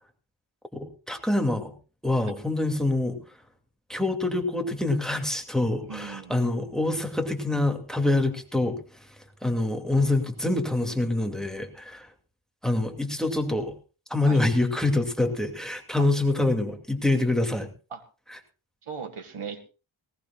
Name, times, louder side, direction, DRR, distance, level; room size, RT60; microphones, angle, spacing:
voice 1, 0.7-1.7 2.0-3.2 3.9-8.8 9.4-12.1 12.6-13.7 14.1-17.7 18.3-18.4, left 2 dB, ahead, 5 dB, 2.5 m, -25 dB
voice 2, 5.9-6.4 14.3-14.4 16.0-16.1 17.9-18.0 18.8-19.7, right 6 dB, 80° right, 8 dB, 2.0 m, -38 dB
19.0 x 18.0 x 2.4 m, 0.34 s
wide cardioid pair, 70°, 49 cm